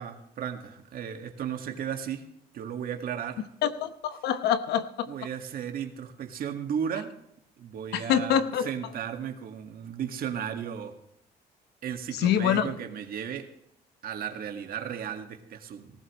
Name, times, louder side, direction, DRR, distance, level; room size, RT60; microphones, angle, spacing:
voice 1, 0.0-2.3 2.5-3.5 5.1-7.1 7.6-11.0 11.8-13.5 14.0-15.9, right 8 dB, 60° right, 6 dB, 1.9 m, -35 dB
voice 2, 3.6-5.1 7.9-8.7 12.1-12.7, left 9 dB, 75° left, 11 dB, 1.1 m, -25 dB
18.0 x 15.5 x 3.2 m, 0.75 s
cardioid pair, 110°, 17 cm